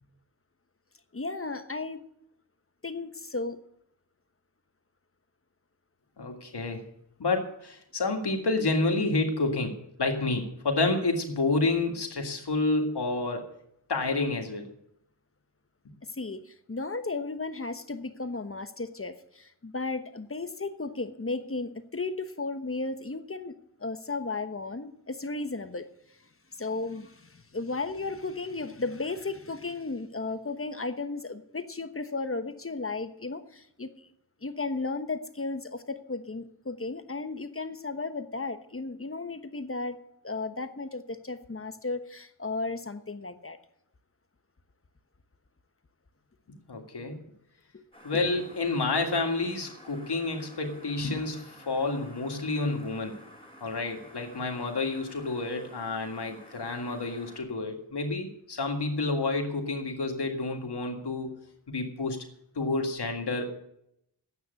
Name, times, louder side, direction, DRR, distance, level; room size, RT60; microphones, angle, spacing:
voice 1, 1.1-2.0 2.8-3.6 16.1-25.9 26.5-33.9 34.4-40.0 40.2-43.6 47.7-47.8 48.1-48.2, left 3 dB, 35° left, 9 dB, 1.1 m, -34 dB
voice 2, 6.2-6.8 7.2-13.5 13.9-14.6 46.7-47.2 48.0-53.2 53.6-61.3 61.7-62.2 62.6-63.5, left 3 dB, 75° left, 3 dB, 2.0 m, -29 dB
sound 1, 47.9-57.4, equal, 15° left, 4.4 m, -52 dB
9.4 x 8.0 x 9.2 m, 0.76 s
cardioid pair, 40°, 40 cm